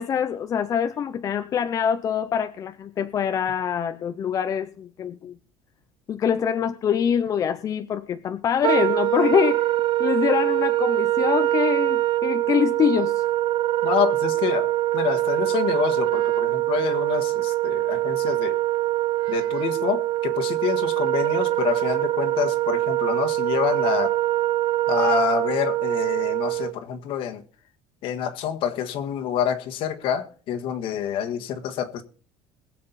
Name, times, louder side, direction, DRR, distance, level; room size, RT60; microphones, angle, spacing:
voice 1, 0.0-5.4 6.1-9.7 10.0-13.2, left 8 dB, 35° left, 0.6 m, -24 dB
Wind instrument woodwind instrument, 8.6-26.7, right 16 dB, 50° right, 0.6 m, -23 dB
voice 2, 13.8-18.6 19.3-24.2 24.9-27.4 28.0-32.0, left 8 dB, 60° left, 1.7 m, -27 dB
21.0 x 7.6 x 4.1 m
cardioid pair, 140°, 10 cm